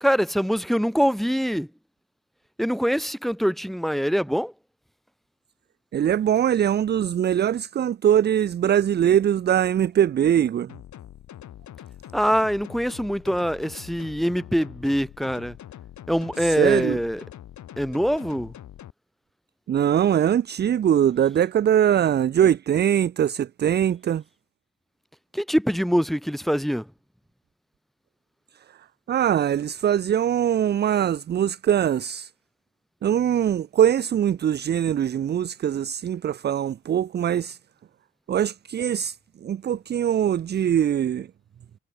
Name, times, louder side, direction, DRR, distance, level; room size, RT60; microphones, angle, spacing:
voice 1, 0.0-1.7 2.6-4.5 12.1-15.6 16.1-17.2 17.8-18.5 25.3-26.9, equal, ahead, 1.4 m, -24 dB
voice 2, 5.9-10.7 16.6-17.0 19.7-24.2 29.1-32.3 33.0-37.6 38.3-39.2 39.4-41.3, right 10 dB, 35° right, 0.4 m, -22 dB
sound 1, 10.7-18.9, left 11 dB, 70° left, 3.9 m, -44 dB
cardioid pair, 90°, 30 cm